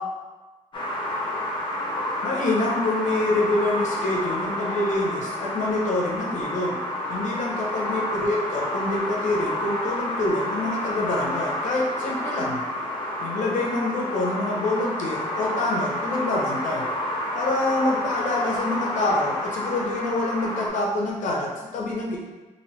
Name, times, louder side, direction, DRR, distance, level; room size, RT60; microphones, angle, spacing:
sound 1, 0.7-20.7, left 1 dB, 40° left, 0.7 m, -29 dB
voice 1, 2.2-6.8 7.1-12.6 13.2-16.9 17.3-22.2, left 2 dB, 75° left, -2 dB, 0.6 m, -26 dB
3.0 x 2.6 x 3.0 m, 1.2 s
cardioid pair, 95°, 13 cm